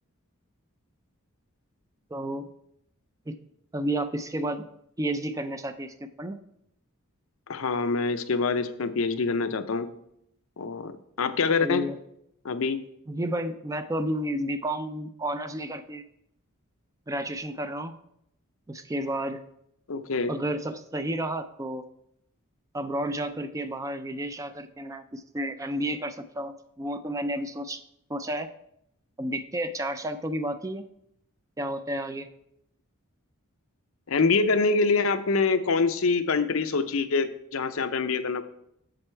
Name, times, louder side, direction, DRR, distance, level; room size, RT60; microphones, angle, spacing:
voice 1, 2.1-2.5 3.3-3.4 3.7-4.6 5.0-6.4 11.6-12.0 13.1-16.0 17.1-17.9 18.7-19.4 20.3-21.8 22.7-27.8 28.1-28.5 29.2-30.8 31.6-32.3, right 1 dB, 15° right, 9 dB, 0.4 m, -31 dB
voice 2, 7.5-9.9 10.6-11.9 12.4-12.8 19.9-20.3 34.1-38.4, left 4 dB, 65° left, 10 dB, 0.6 m, -25 dB
7.8 x 6.9 x 4.4 m, 0.76 s
head